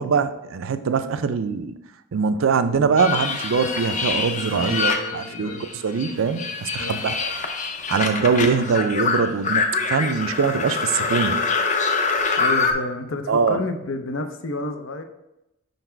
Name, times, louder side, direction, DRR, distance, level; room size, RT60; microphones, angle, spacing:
voice 1, 0.0-1.7 2.1-7.3 7.9-11.4 13.3-13.6, right 5 dB, 80° right, 11 dB, 0.4 m, -22 dB
sound 1, 3.0-5.7 6.0-12.7, left 4 dB, 40° left, 0.6 m, -25 dB
voice 2, 4.5-5.6 6.8-7.1 12.4-15.0, left 2 dB, 80° left, 7 dB, 0.6 m, -30 dB
5.3 x 4.0 x 4.4 m, 0.89 s
head